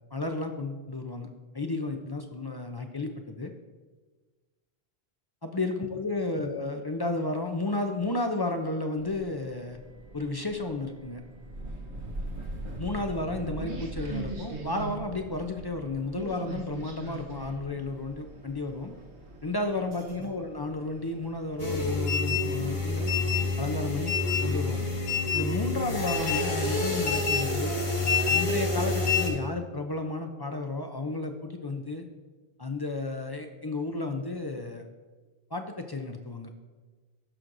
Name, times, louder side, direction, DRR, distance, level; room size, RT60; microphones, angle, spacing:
voice 1, 0.1-1.3 1.5-3.5 5.4-9.8 10.1-11.2 12.8-18.9 19.4-23.1 23.6-24.1 24.4-24.9 25.3-27.8 28.3-32.1 32.6-34.8 35.5-36.5, left 2 dB, 30° left, 5 dB, 0.5 m, -32 dB
sound 1, 9.0-22.9, right 2 dB, 85° right, 1.3 m, -41 dB
sound 2, 21.6-29.3, left 4 dB, 45° left, 1.4 m, -27 dB
16.0 x 6.2 x 2.6 m, 1.3 s
omnidirectional pair, 1.1 m